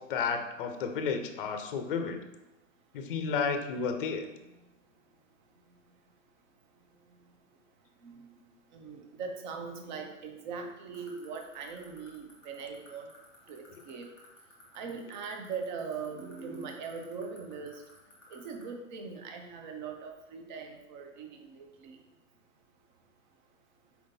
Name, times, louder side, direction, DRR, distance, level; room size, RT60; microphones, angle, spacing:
voice 1, 0.0-2.2 2.9-4.3, left 5 dB, 45° left, 7 dB, 0.5 m, -32 dB
voice 2, 8.7-13.1 13.5-14.1 14.7-17.8 18.3-22.0, right 5 dB, 35° right, 3 dB, 0.7 m, -41 dB
sound 1, 10.9-18.6, left 4 dB, 5° right, 0.3 m, -56 dB
4.5 x 3.6 x 2.7 m, 0.96 s
hypercardioid pair, 135°, 40 cm